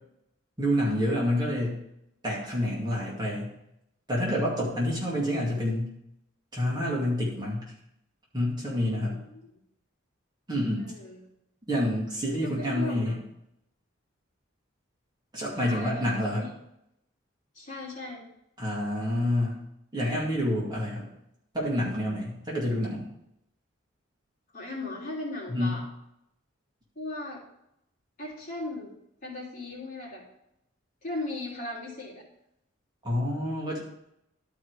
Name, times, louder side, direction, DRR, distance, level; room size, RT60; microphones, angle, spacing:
voice 1, 0.6-1.8 2.2-3.5 4.1-5.9 6.5-7.7 8.3-9.2 10.5-10.8 11.7-13.2 15.3-16.5 18.6-19.6 19.9-21.1 21.5-23.1 25.5-25.7 33.0-33.8, left 1 dB, 20° right, -5 dB, 2.3 m, -28 dB
voice 2, 4.6-5.0 8.9-9.5 10.7-11.2 12.4-13.1 15.5-16.5 17.5-18.2 24.5-25.9 26.9-27.4 28.2-28.9 29.2-30.2 31.0-32.2, left 2 dB, 40° left, -5 dB, 3.1 m, -37 dB
12.0 x 4.9 x 4.8 m, 0.81 s
head